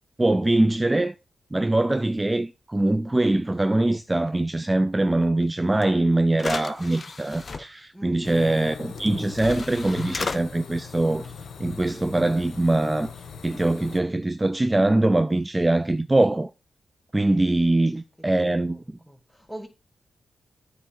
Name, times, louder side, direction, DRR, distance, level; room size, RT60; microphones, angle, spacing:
voice 1, 0.2-1.1 1.5-11.3 11.6-13.1 13.4-16.5 17.1-19.0, right 2 dB, 25° right, 0.5 m, -23 dB
sound 1, 5.8-5.9 6.3-7.6 9.0-9.1 9.4-10.4, left 4 dB, 50° left, 0.7 m, -33 dB
voice 2, 7.9-8.5 17.6-19.7, right 1 dB, 5° left, 1.9 m, -45 dB
sound 2, 8.2-14.0, left 6 dB, 80° left, 0.9 m, -40 dB
8.8 x 3.3 x 6.7 m
supercardioid pair, 40°, 0 cm